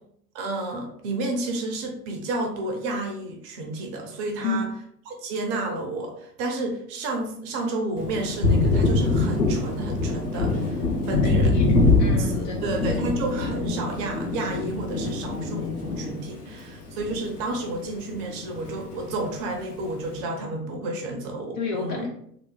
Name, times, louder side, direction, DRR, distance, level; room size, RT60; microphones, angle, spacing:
voice 1, 0.3-4.7 5.1-11.5 12.1-22.1, right 2 dB, 30° right, 3 dB, 0.8 m, -31 dB
Thunder, 8.0-17.7 18.0-19.2, left 3 dB, 70° left, 1.1 m, -24 dB
voice 2, 11.2-12.7 16.3-16.4 21.6-22.1, left 4 dB, 25° left, -1 dB, 0.6 m, -31 dB
3.5 x 2.9 x 3.7 m, 0.68 s
figure-of-eight pair, 95°, 47 cm